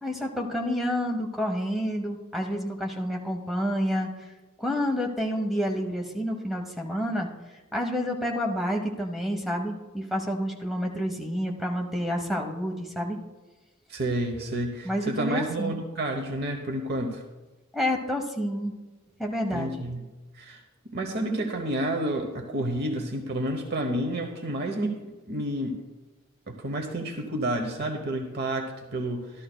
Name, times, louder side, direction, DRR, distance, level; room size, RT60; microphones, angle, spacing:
voice 1, 0.0-4.3 4.6-7.3 7.7-13.2 14.8-15.7 17.7-18.7 19.2-19.8, equal, ahead, 1 dB, 0.9 m, -29 dB
voice 2, 13.9-17.2 19.5-20.0 20.3-25.0 25.3-25.8 26.5-29.4, right 1 dB, 50° right, 3 dB, 0.9 m, -30 dB
14.5 x 12.5 x 2.2 m, 1.2 s
head